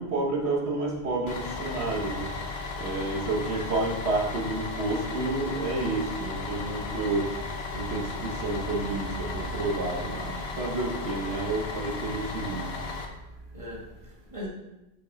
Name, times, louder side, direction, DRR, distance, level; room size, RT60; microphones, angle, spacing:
voice 1, 0.0-2.2 2.8-7.3 7.7-12.7, right 2 dB, 85° right, -2 dB, 1.5 m, -30 dB
Bus, 1.3-13.1, left 3 dB, 75° left, 1.1 m, -35 dB
voice 2, 3.2-3.7 7.8-7.9 13.5-14.5, equal, 30° right, -3 dB, 1.7 m, -39 dB
6.9 x 5.3 x 4.0 m, 0.97 s
omnidirectional pair, 1.1 m